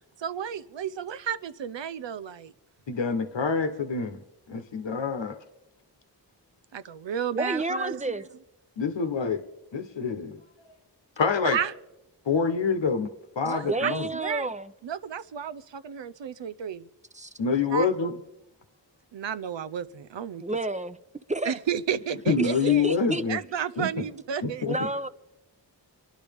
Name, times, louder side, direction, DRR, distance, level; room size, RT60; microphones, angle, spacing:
voice 1, 0.2-2.5 6.7-8.0 11.5-11.7 13.4-14.5 14.8-16.9 17.7-17.9 19.1-20.4 21.4-22.9 23.3-24.7, right 8 dB, 80° right, 0.7 m, -32 dB
voice 2, 2.9-4.2 4.5-5.4 8.8-9.4 9.7-10.4 11.2-11.6 12.3-13.1 13.4-14.1 17.4-18.2 22.3-23.4 23.8-23.9 24.4-24.7, left 5 dB, 85° left, 1.1 m, -26 dB
voice 3, 7.3-8.3 13.7-14.7 17.1-17.3 20.4-21.0 21.3-21.6 22.4-23.2 24.7-25.1, right 2 dB, 15° right, 0.8 m, -30 dB
26.0 x 11.0 x 3.5 m
cardioid pair, 50°, 43 cm